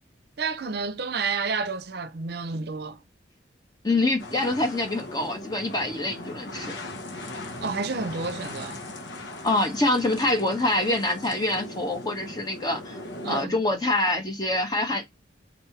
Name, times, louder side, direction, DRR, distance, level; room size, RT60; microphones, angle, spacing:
voice 1, 0.4-3.0 7.6-8.8 13.2-13.6, right 4 dB, 60° right, 0.6 m, -30 dB
voice 2, 3.8-6.8 9.4-15.2, left 2 dB, 20° left, 1.4 m, -25 dB
sound 1, 4.2-13.4, left 1 dB, 80° left, 1.3 m, -39 dB
4.1 x 3.3 x 2.8 m
head